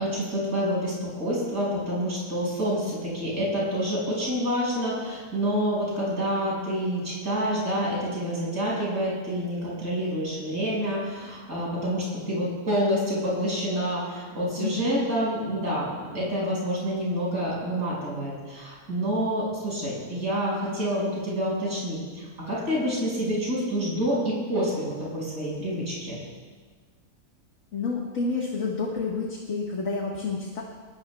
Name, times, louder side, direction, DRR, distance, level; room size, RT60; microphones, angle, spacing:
voice 1, 0.0-26.2, equal, 90° right, -6 dB, 6.4 m, -28 dB
voice 2, 14.6-15.1 27.7-30.6, left 4 dB, 65° left, -2 dB, 2.0 m, -29 dB
22.0 x 21.5 x 2.3 m, 1.5 s
omnidirectional pair, 1.5 m